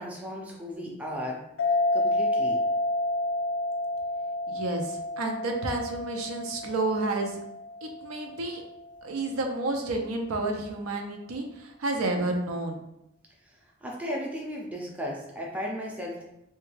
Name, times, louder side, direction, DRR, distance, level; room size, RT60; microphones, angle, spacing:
voice 1, 0.0-1.4 1.9-2.6 13.5-13.6 13.8-16.2, equal, 5° right, -2 dB, 0.4 m, -35 dB
sound 1, 1.6-8.6, left 2 dB, 65° left, 0.4 m, -29 dB
voice 2, 4.5-7.4 7.8-8.6 9.0-12.8, right 2 dB, 90° right, 3 dB, 0.5 m, -30 dB
3.3 x 2.2 x 3.2 m, 0.81 s
head